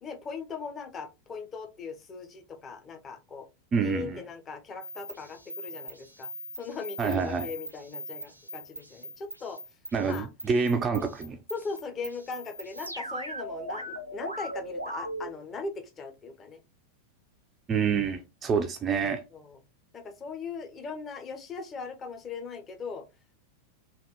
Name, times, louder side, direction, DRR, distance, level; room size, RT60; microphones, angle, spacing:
voice 1, 0.0-3.5 3.8-6.3 6.6-9.6 10.1-10.3 11.5-16.6 19.3-19.6 19.9-23.0, left 4 dB, 25° left, 0.6 m, -39 dB
voice 2, 3.7-4.2 7.0-7.5 9.9-11.4 17.7-19.2, right 5 dB, 25° right, 0.4 m, -27 dB
sound 1, 4.8-15.3, equal, 85° right, 0.5 m, -40 dB
3.3 x 2.3 x 2.9 m
figure-of-eight pair, 90°, 0 cm